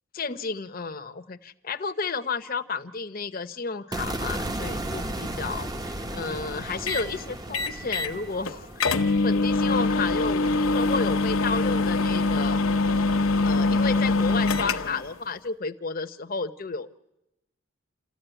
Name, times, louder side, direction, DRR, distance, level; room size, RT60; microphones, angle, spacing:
voice 1, 0.1-9.0 9.2-12.6 13.4-17.0, left 4 dB, 45° left, 8 dB, 0.9 m, -32 dB
sound 1, 3.9-10.1, right 1 dB, 20° right, 0.8 m, -35 dB
sound 2, 6.9-7.1 7.5-8.1 8.5-8.6 8.8-15.1, left 3 dB, 85° left, 1.0 m, -23 dB
28.5 x 14.0 x 9.1 m, 0.92 s
head